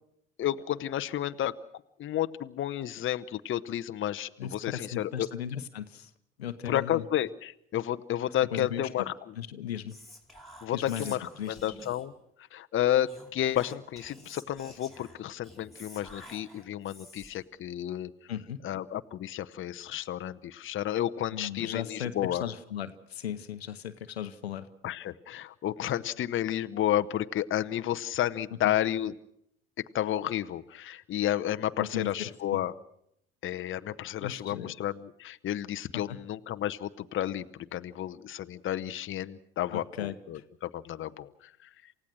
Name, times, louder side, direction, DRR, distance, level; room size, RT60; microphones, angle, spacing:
voice 1, 0.4-1.6 2.0-5.3 6.7-9.1 10.6-12.1 12.4-18.1 18.6-22.4 24.8-29.1 29.9-32.7 33.4-41.3, left 12 dB, 40° left, 10 dB, 0.8 m, -31 dB
voice 2, 4.4-6.1 6.4-7.0 8.3-9.0 9.3-10.0 10.7-11.7 18.3-18.6 21.3-24.7 28.6-28.7 31.8-32.6 34.2-34.7 35.9-36.2 39.7-40.4, left 10 dB, 90° left, 11 dB, 0.9 m, -37 dB
Whispering, 9.9-12.2 13.0-17.5, left 1 dB, ahead, 5.0 m, -50 dB
28.0 x 16.0 x 6.3 m, 0.75 s
hypercardioid pair, 60°, 30 cm